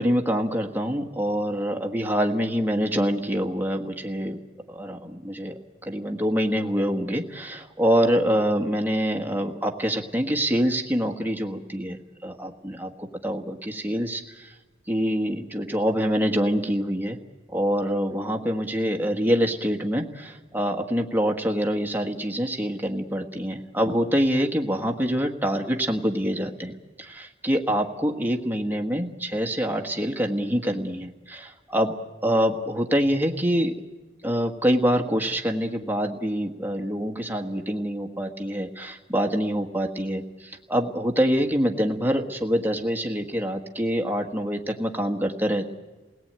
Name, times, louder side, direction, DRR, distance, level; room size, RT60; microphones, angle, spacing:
voice 1, 0.0-4.4 4.7-5.5 5.8-14.5 14.9-17.2 17.5-32.0 32.2-33.8 34.2-45.7, equal, 10° right, 3 dB, 1.6 m, -25 dB
28.5 x 18.0 x 8.9 m, 1.2 s
head